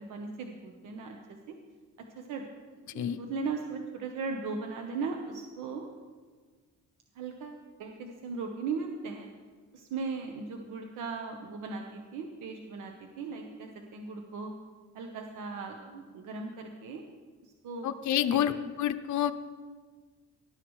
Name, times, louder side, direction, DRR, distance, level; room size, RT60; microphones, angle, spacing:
voice 1, 0.0-1.5 2.2-2.4 2.9-5.9 7.1-9.3 9.7-14.5 14.9-17.0 17.4-17.9 18.3-18.5, right 4 dB, 85° right, 3 dB, 1.2 m, -38 dB
voice 2, 17.8-18.5 18.8-19.3, left 10 dB, 70° left, 8 dB, 0.7 m, -28 dB
18.5 x 12.0 x 3.2 m, 1.5 s
cardioid pair, 90°, 30 cm